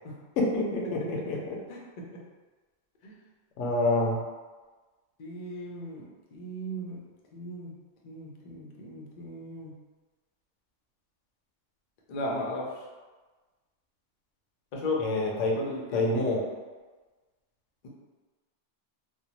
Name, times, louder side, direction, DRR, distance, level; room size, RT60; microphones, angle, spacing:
voice 1, 0.4-1.6 3.6-4.2 15.0-15.6 15.9-16.4, left 2 dB, 90° left, -1 dB, 1.0 m, -27 dB
voice 2, 5.2-7.0 7.3-7.7 8.0-9.7 12.1-12.7 14.7-15.0 15.5-16.0, left 1 dB, 55° left, -3 dB, 0.5 m, -36 dB
2.6 x 2.0 x 2.8 m, 1.3 s
omnidirectional pair, 1.3 m